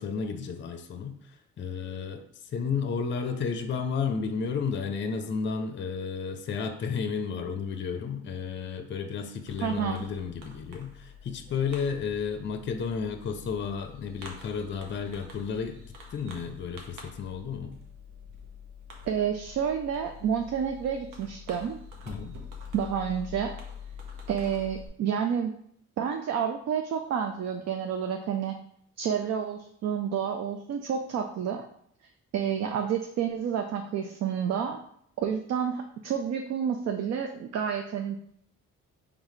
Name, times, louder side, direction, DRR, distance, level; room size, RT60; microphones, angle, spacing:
voice 1, 0.0-15.8 16.1-17.7 22.1-22.4, left 6 dB, 40° left, 8 dB, 0.5 m, -32 dB
Fireworks, 9.5-24.9, left 5 dB, 85° right, 0.9 m, -46 dB
voice 2, 9.6-10.0 19.1-21.8 22.7-23.6 24.3-25.5 26.0-28.6 29.0-31.7 32.3-34.8 35.2-38.2, right 8 dB, 60° right, 5 dB, 0.5 m, -29 dB
3.9 x 3.4 x 3.2 m, 0.67 s
cardioid pair, 90°, 30 cm